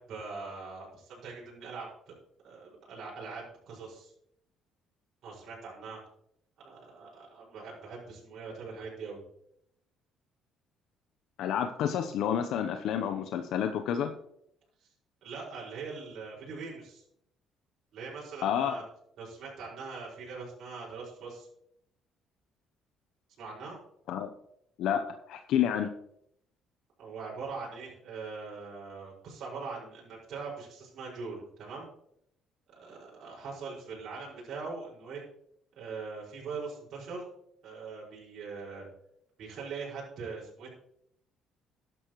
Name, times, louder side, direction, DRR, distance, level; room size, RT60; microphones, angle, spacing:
voice 1, 0.0-2.1 2.4-4.1 5.2-6.0 6.6-9.2 15.2-17.0 17.9-18.8 19.2-21.5 23.4-23.8 27.0-31.9 32.8-35.2 35.8-37.2 37.6-38.9 39.4-40.7, right 4 dB, 65° right, -5 dB, 5.5 m, -42 dB
voice 2, 11.4-14.1 18.4-18.8 24.1-24.3 24.8-25.9, left 9 dB, 75° left, 7 dB, 0.8 m, -29 dB
13.0 x 11.0 x 3.1 m, 0.73 s
cardioid pair, 95°, 0 cm